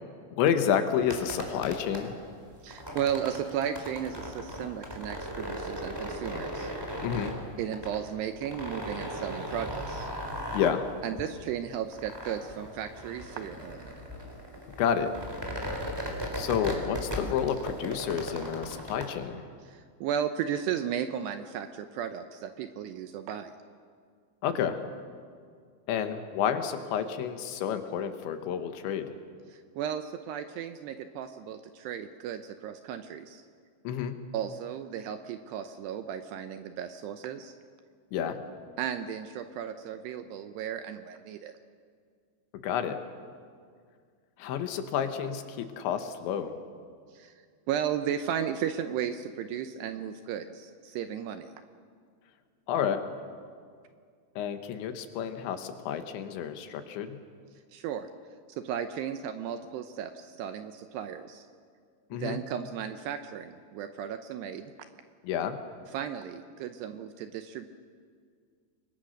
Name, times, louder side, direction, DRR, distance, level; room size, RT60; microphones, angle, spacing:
voice 1, 0.3-2.2 7.0-7.4 10.5-10.9 14.8-15.1 16.4-19.5 24.4-24.8 25.9-29.1 33.9-34.2 38.1-38.4 42.6-43.0 44.4-46.5 52.7-53.0 54.4-57.2 62.1-62.4 65.2-65.6, left 8 dB, 75° left, 8 dB, 3.5 m, -30 dB
sound 1, 1.0-19.1, equal, 5° right, 3.1 m, -37 dB
voice 2, 2.6-6.7 7.6-10.1 11.0-13.9 19.7-23.5 29.5-33.4 34.3-37.5 38.8-41.5 47.1-47.3 47.7-51.5 57.7-58.1 58.5-61.5 62.1-64.7 65.9-67.7, right 9 dB, 75° right, 8 dB, 2.6 m, -35 dB
29.5 x 22.5 x 6.5 m, 2.1 s
omnidirectional pair, 5.5 m